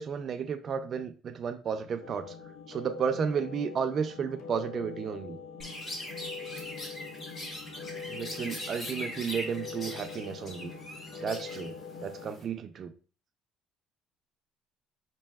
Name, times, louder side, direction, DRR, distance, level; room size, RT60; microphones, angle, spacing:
voice 1, 0.0-2.3 2.7-5.4 8.1-10.7 11.2-11.7 12.0-12.9, right 7 dB, 35° right, 0.4 m, -33 dB
sound 1, 2.0-12.3, left 6 dB, 75° left, 0.5 m, -43 dB
Chirp tweet, 5.6-12.4, left 1 dB, 30° left, 1.0 m, -41 dB
5.4 x 2.7 x 2.3 m
cardioid pair, 155°, 0 cm